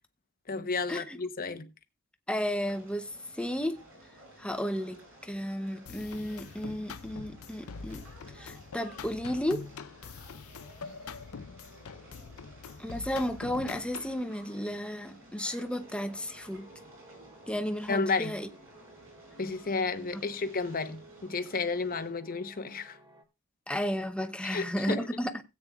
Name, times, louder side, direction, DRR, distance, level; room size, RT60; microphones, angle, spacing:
voice 1, 0.5-1.7 17.9-18.4 19.4-23.0 24.4-25.1, left 4 dB, 40° left, 0.9 m, -32 dB
voice 2, 2.3-3.8 4.4-8.0 8.3-9.7 12.8-16.7 17.5-18.5 20.1-20.2 23.7-25.4, equal, 5° left, 0.7 m, -33 dB
sound 1, 2.6-22.1, right 1 dB, 65° right, 7.6 m, -55 dB
sound 2, 5.9-14.2, left 5 dB, 75° left, 0.6 m, -44 dB
sound 3, 15.7-23.2, right 2 dB, 20° right, 1.0 m, -55 dB
17.0 x 8.6 x 2.4 m
head